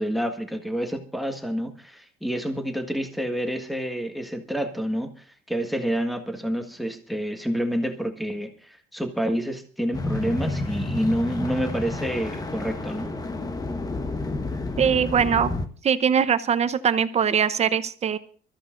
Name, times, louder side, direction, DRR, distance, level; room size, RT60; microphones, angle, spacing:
voice 1, 0.0-13.1, equal, ahead, 6 dB, 1.6 m, -28 dB
sound 1, 9.9-15.7, left 2 dB, 20° left, 1.3 m, -30 dB
voice 2, 14.8-15.5 15.8-18.2, right 7 dB, 40° right, 13 dB, 0.9 m, -21 dB
24.0 x 14.0 x 2.6 m, 0.42 s
cardioid pair, 110°, 17 cm